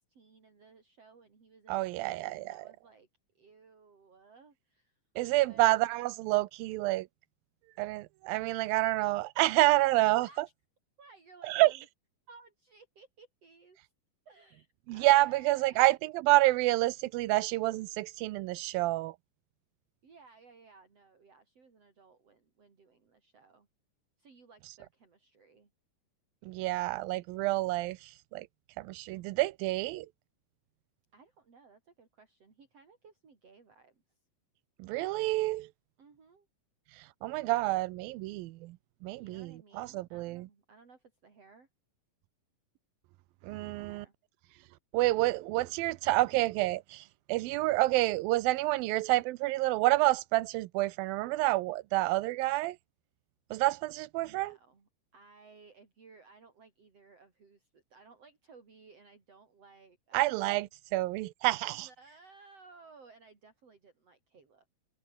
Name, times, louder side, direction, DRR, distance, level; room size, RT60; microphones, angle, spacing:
voice 1, 0.0-3.1 3.3-5.0 5.3-5.7 10.2-10.4 11.0-11.9 12.3-13.8 14.3-15.9 20.0-23.7 24.2-25.7 29.1-29.2 31.1-34.0 36.0-36.5 39.1-41.7 43.5-44.1 54.2-60.4 61.6-64.7, right 4 dB, 45° right, 5.0 m, -58 dB
voice 2, 1.7-2.6 5.2-7.1 7.8-10.3 11.4-11.7 14.9-19.2 26.4-28.5 28.8-30.1 34.8-35.7 37.0-38.8 39.0-40.5 43.4-44.1 44.9-52.8 53.5-54.5 60.1-61.9, right 19 dB, 90° right, 2.6 m, -28 dB
omnidirectional pair, 4.0 m